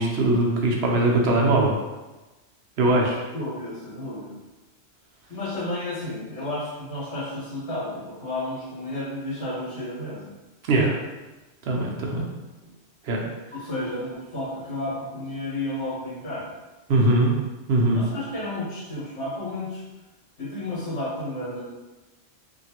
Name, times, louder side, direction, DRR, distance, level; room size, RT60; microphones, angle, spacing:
voice 1, 0.0-1.8 2.8-3.2 10.7-10.9 11.7-12.3 13.0-13.2 16.9-17.3 17.7-18.0, right 2 dB, 60° right, -1 dB, 0.8 m, -21 dB
voice 2, 3.3-4.4 5.3-10.3 12.0-12.2 12.6-12.7 13.5-16.5 17.9-19.8 20.4-21.6, left 1 dB, 70° left, -8 dB, 1.7 m, -32 dB
3.0 x 2.7 x 2.8 m, 1.1 s
omnidirectional pair, 1.2 m